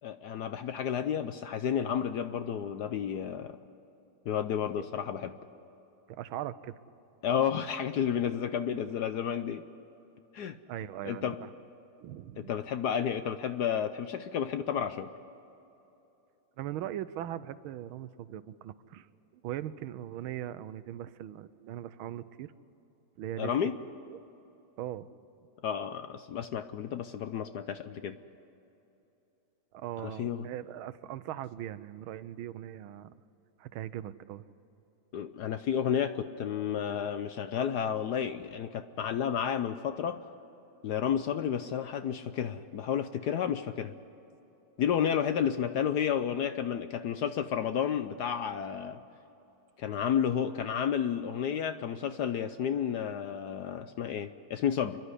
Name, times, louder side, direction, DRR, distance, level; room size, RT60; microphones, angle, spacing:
voice 1, 0.0-3.6 4.3-5.4 7.2-9.6 10.3-10.6 11.0-11.4 12.4-15.1 23.4-23.8 25.6-28.2 30.0-30.4 35.1-40.2 40.8-43.9 44.8-49.0 49.8-55.0, left 8 dB, 65° left, 10 dB, 1.0 m, -31 dB
voice 2, 6.1-6.7 10.7-11.5 12.0-12.5 16.6-19.1 19.4-22.5 23.2-23.5 24.1-24.2 24.8-25.1 29.7-33.1 33.6-34.5, right 12 dB, 80° right, 14 dB, 1.5 m, -40 dB
28.5 x 11.5 x 9.8 m, 3.0 s
omnidirectional pair, 2.3 m